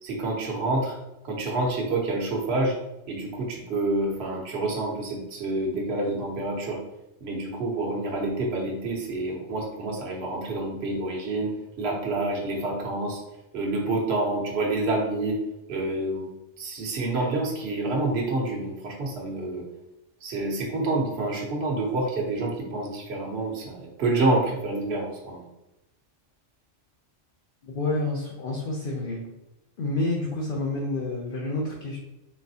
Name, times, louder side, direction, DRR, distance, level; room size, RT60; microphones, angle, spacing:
voice 1, 0.0-1.0 1.2-2.8 3.1-6.8 7.2-11.5 11.8-13.2 13.5-15.4 15.7-16.3 16.6-19.6 20.2-25.4, right 2 dB, 60° right, -1 dB, 1.0 m, -28 dB
voice 2, 27.6-29.3 29.8-32.0, left 2 dB, 55° left, -1 dB, 0.7 m, -29 dB
4.0 x 3.5 x 2.7 m, 0.92 s
omnidirectional pair, 1.3 m